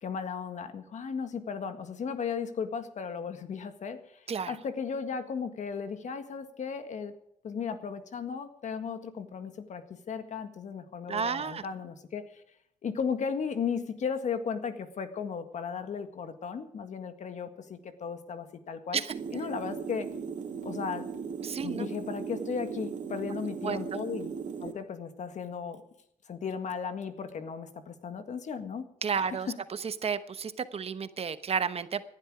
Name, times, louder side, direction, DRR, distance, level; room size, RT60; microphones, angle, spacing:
voice 1, 0.0-7.1 7.4-12.4 12.8-19.0 19.3-20.1 20.6-21.1 21.6-24.3 24.6-25.8 26.3-28.9 29.2-29.6, left 6 dB, 60° left, 9 dB, 1.8 m, -35 dB
voice 2, 11.1-11.6 18.9-19.1 21.4-21.9 23.6-23.8 29.0-29.5 29.8-32.0, right 6 dB, 45° right, 12 dB, 1.0 m, -31 dB
sound 1, 19.1-24.7, right 6 dB, 65° right, 2.4 m, -37 dB
18.5 x 11.5 x 4.9 m, 0.75 s
cardioid pair, 95°, 14 cm